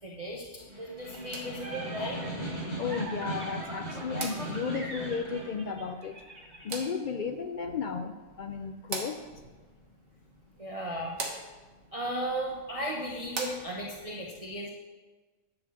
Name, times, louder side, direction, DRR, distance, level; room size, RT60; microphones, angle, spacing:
voice 1, 0.0-2.2 10.6-11.2 11.9-14.7, right 1 dB, 30° right, -1 dB, 1.0 m, -36 dB
Snare drum, 0.6-5.6, right 1 dB, 30° left, 2.3 m, -38 dB
sound 1, 1.0-14.0, right 3 dB, 70° right, 1.6 m, -45 dB
sound 2, 1.1-6.8, right 2 dB, 55° right, 2.2 m, -43 dB
voice 2, 2.8-6.2 6.6-9.2, left 5 dB, 70° left, 8 dB, 0.4 m, -34 dB
11.0 x 5.0 x 7.2 m, 1.3 s
omnidirectional pair, 1.4 m